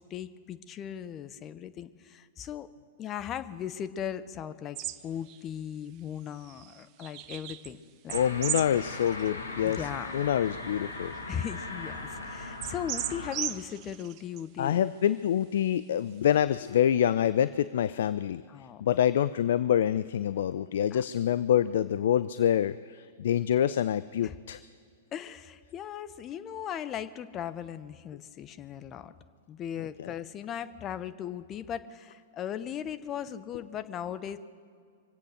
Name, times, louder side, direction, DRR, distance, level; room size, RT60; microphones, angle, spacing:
voice 1, 0.0-2.7 3.0-4.8 5.0-7.8 8.0-8.2 9.6-10.1 11.3-14.9 18.5-18.8 20.9-21.0 24.2-24.4 25.1-29.1 29.5-34.4, left 9 dB, 30° left, 12 dB, 0.8 m, -38 dB
sound 1, 4.8-5.0 5.3-5.4 6.4-7.7 8.1-9.3 9.8-9.9 10.5-10.7 11.0-11.1 12.6-14.4, right 13 dB, 40° right, 0.6 m, -36 dB
sound 2, 8.1-13.4, left 2 dB, 90° left, 1.7 m, -39 dB
voice 2, 8.1-9.8 10.1-11.1 14.6-18.4 18.8-24.6, left 10 dB, 65° left, 15 dB, 0.4 m, -26 dB
25.0 x 8.4 x 6.4 m, 2.2 s
hypercardioid pair, 110°, 0 cm